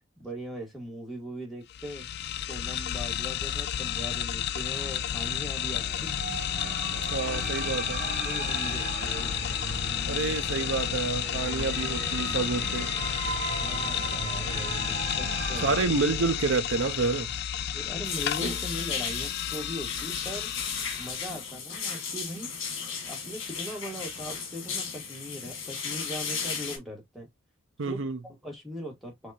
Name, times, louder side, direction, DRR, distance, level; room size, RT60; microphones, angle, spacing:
voice 1, 0.2-2.1 2.4-6.2 8.0-9.4 13.6-16.0 17.7-20.5 21.0-22.5 23.1-27.3 27.9-29.3, equal, ahead, 1.8 m, -40 dB
sound 1, 1.7-21.4, left 10 dB, 55° left, 0.4 m, -32 dB
sound 2, 4.4-15.8, right 3 dB, 50° right, 1.3 m, -37 dB
voice 2, 7.1-8.0 10.1-12.9 15.6-17.3 27.8-28.2, right 4 dB, 70° right, 0.7 m, -28 dB
sound 3, 18.0-26.8, left 5 dB, 75° left, 1.6 m, -35 dB
4.6 x 2.9 x 2.7 m
head